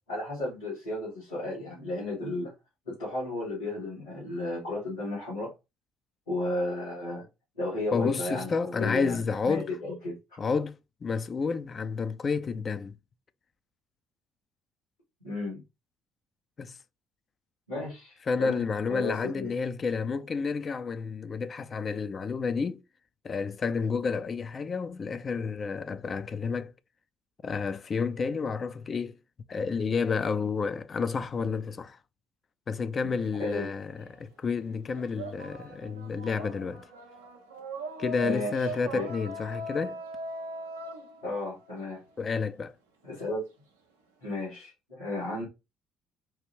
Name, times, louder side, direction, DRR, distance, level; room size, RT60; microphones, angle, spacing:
voice 1, 0.1-2.5 2.9-5.5 6.3-7.3 7.6-9.2 9.4-10.2 15.2-15.6 17.7-18.6 18.9-19.5 33.4-33.7 38.2-39.1 41.2-42.0 43.0-43.4 44.2-45.4, left 2 dB, 85° left, 2.5 m, -34 dB
voice 2, 7.9-9.7 10.4-13.0 16.6-16.8 18.3-22.8 23.2-26.7 27.4-29.2 29.5-32.0 32.7-36.9 38.0-40.0 42.2-42.7, left 5 dB, 40° left, 0.4 m, -30 dB
sound 1, 32.9-34.2 34.5-42.3, right 2 dB, 80° right, 0.6 m, -39 dB
4.5 x 2.5 x 3.0 m
figure-of-eight pair, 50°, 0 cm